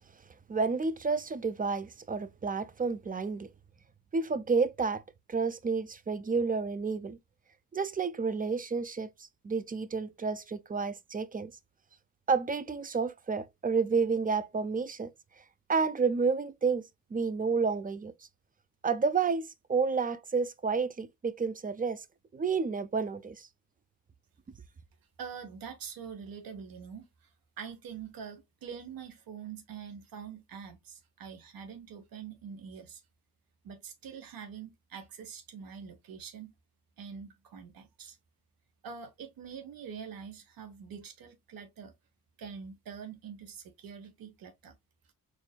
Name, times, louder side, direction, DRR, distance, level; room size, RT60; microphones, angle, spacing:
voice 1, 0.5-3.5 4.1-5.0 5.3-7.2 7.7-11.5 12.3-15.1 15.4-15.5 15.7-16.8 17.1-18.1 18.8-22.0 22.3-23.5, right 5 dB, 25° right, 0.5 m, -30 dB
voice 2, 25.2-27.1 27.6-33.0 33.6-36.5 37.0-38.2 38.8-41.9 42.4-44.8, right 7 dB, 85° right, 1.2 m, -45 dB
4.4 x 3.2 x 2.2 m
cardioid pair, 80°, 34 cm